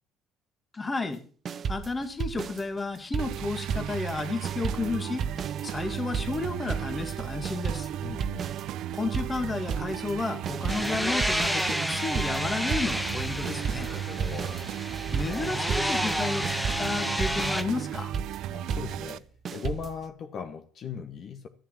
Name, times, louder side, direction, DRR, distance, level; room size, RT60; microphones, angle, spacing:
voice 1, 0.7-1.2 1.7-5.3 5.6-7.9 8.9-13.9 15.1-16.4 16.8-18.1, left 3 dB, 20° left, 1.8 m, -32 dB
sound 1, 1.4-4.2 4.4-20.1, right 6 dB, 40° right, 0.8 m, -34 dB
sound 2, 3.2-19.2, right 11 dB, 65° right, 0.5 m, -35 dB
voice 2, 8.0-8.5 13.8-14.6 18.5-21.5, left 6 dB, 45° left, 1.3 m, -39 dB
sound 3, 10.7-17.6, equal, 5° left, 1.2 m, -30 dB
13.0 x 7.3 x 7.4 m
cardioid pair, 115°, 0 cm